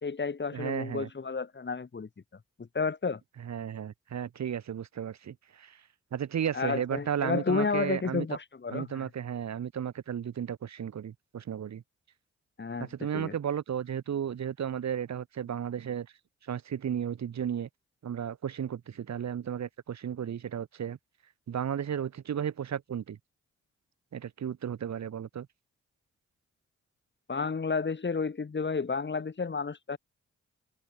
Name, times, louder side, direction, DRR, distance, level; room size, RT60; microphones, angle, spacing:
voice 1, 0.0-2.1 2.6-3.2 6.5-9.1 12.6-12.9 13.1-13.3 27.3-30.0, left 4 dB, 35° left, 1.8 m, -31 dB
voice 2, 0.5-1.1 3.4-5.8 6.1-8.3 8.7-11.8 12.8-16.1 16.4-17.7 18.0-21.0 21.5-23.2 24.1-25.5, right 9 dB, 65° right, 1.8 m, -34 dB
supercardioid pair, 45°, 30 cm